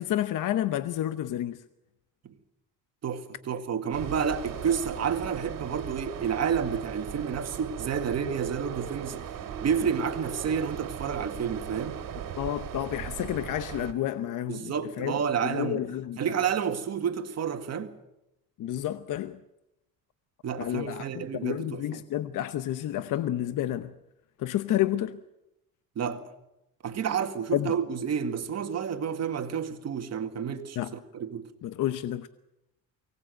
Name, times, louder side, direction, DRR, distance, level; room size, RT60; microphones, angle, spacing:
voice 1, 0.0-1.6 12.4-16.2 18.6-19.4 20.6-23.9 24.4-25.2 27.5-27.7 30.8-30.9 31.6-32.3, left 12 dB, 60° left, 0.9 m, -30 dB
voice 2, 3.0-9.2 9.6-12.0 14.5-15.8 16.2-17.9 20.4-22.0 26.0-26.2 26.8-30.8 31.1-31.5, right 7 dB, 45° right, 2.0 m, -30 dB
sound 1, 3.9-13.9, right 9 dB, 65° right, 2.7 m, -38 dB
23.5 x 18.5 x 7.9 m
cardioid pair, 120°, 35 cm